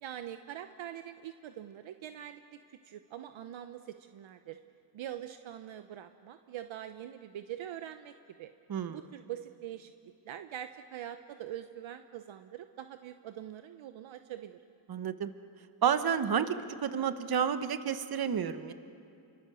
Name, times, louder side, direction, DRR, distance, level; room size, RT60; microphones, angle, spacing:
voice 1, 0.0-2.4 2.7-4.6 4.9-8.1 8.4-8.5 8.9-9.9 10.2-14.6, right 11 dB, 65° right, 9 dB, 1.0 m, -43 dB
voice 2, 8.7-9.0 14.9-15.3 15.8-16.5 16.8-18.7, right 8 dB, 45° right, 10 dB, 1.4 m, -30 dB
28.5 x 24.0 x 7.0 m, 2.6 s
cardioid pair, 85°, 50 cm